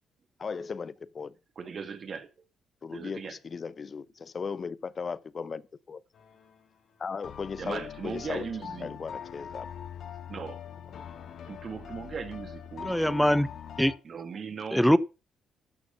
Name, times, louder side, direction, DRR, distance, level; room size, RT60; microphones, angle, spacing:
voice 1, 0.4-1.3 2.8-6.0 7.0-8.5 8.8-9.7, left 5 dB, 45° left, 0.7 m, -37 dB
voice 2, 1.6-2.3 2.9-3.4 7.6-9.0 10.3-10.6 11.4-13.4 14.0-14.9, right 6 dB, 50° right, 2.1 m, -38 dB
sound 1, 6.1-6.7 7.2-14.0, left 8 dB, 65° left, 1.9 m, -43 dB
voice 3, 12.8-13.5 13.8-13.9 14.7-15.0, equal, 5° left, 0.9 m, -22 dB
12.5 x 6.5 x 5.6 m
supercardioid pair, 65°, 0 cm